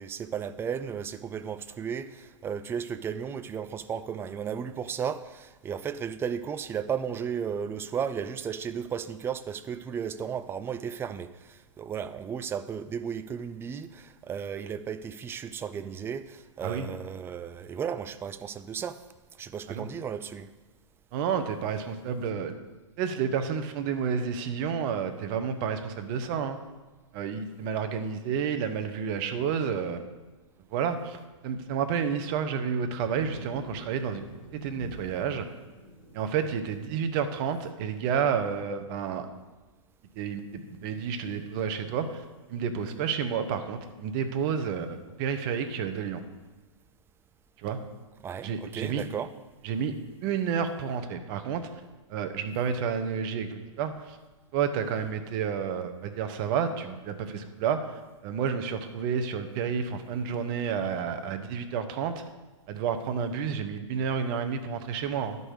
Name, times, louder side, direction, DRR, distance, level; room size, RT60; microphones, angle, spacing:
voice 1, 0.0-19.0 19.4-20.5 48.2-49.3, right 7 dB, 15° right, 12 dB, 0.4 m, -34 dB
voice 2, 21.1-22.6 23.0-26.6 27.1-30.0 30.7-35.5 36.1-39.3 40.1-42.2 42.5-46.2 47.6-47.8 48.4-49.1 49.6-51.7 52.1-54.2 54.5-62.2 62.7-65.4, right 7 dB, 40° right, 8 dB, 1.0 m, -30 dB
sound 1, 33.0-38.6, right 2 dB, 35° left, 3.4 m, -49 dB
11.5 x 5.5 x 6.5 m, 1.3 s
hypercardioid pair, 120°, 17 cm